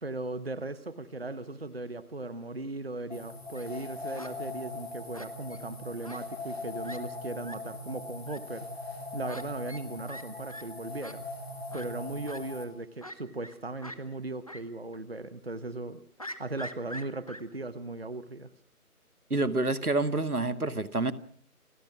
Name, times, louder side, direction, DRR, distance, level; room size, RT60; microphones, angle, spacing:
voice 1, 0.0-8.7 9.1-11.3 11.7-16.0 16.4-18.5, right 2 dB, 40° right, 1.1 m, -38 dB
sound 1, 3.1-12.6, left 2 dB, 45° left, 4.2 m, -41 dB
Fowl, 3.3-3.7 4.2-4.3 5.1-5.6 6.0-6.2 6.5-6.6 6.8-7.0 7.4-7.6 8.3-8.4 9.3-9.4 9.7-9.8 10.1-10.2 10.5-10.6 11.0-11.1 11.7-11.9 12.3-12.4 13.0-13.5 13.8-14.0 14.5-14.6 14.9-15.0 16.2-17.4, equal, 25° left, 1.2 m, -43 dB
voice 2, 19.3-21.1, right 2 dB, 75° right, 2.0 m, -28 dB
29.0 x 17.5 x 6.1 m
figure-of-eight pair, 165°, 45 cm